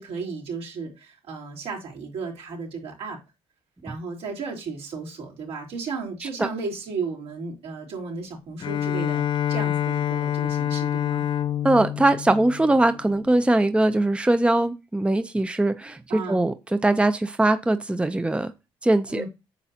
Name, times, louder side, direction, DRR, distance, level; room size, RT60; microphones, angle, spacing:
voice 1, 0.0-3.2 3.8-11.2 16.1-16.4 19.1-19.3, right 4 dB, 75° right, 4.0 m, -34 dB
Bowed string instrument, 8.6-13.3, left 10 dB, 50° left, 0.7 m, -27 dB
voice 2, 11.6-16.5 16.8-18.5 18.8-19.2, right 2 dB, 10° right, 0.7 m, -21 dB
9.2 x 6.8 x 2.9 m
supercardioid pair, 75°, 10 cm